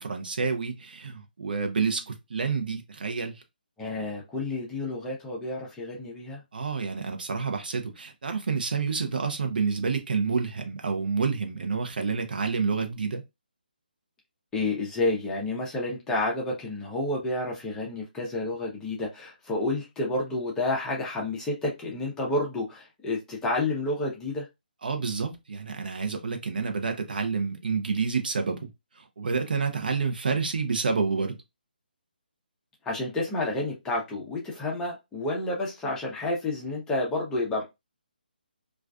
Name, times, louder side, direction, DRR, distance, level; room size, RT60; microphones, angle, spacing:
voice 1, 0.0-3.4 6.5-13.2 24.8-28.7 29.0-31.4, right 5 dB, 60° right, 0.6 m, -29 dB
voice 2, 3.8-6.4 14.5-24.5 32.8-37.6, left 2 dB, 10° left, 0.6 m, -30 dB
2.3 x 2.3 x 2.3 m
figure-of-eight pair, 150°, 5 cm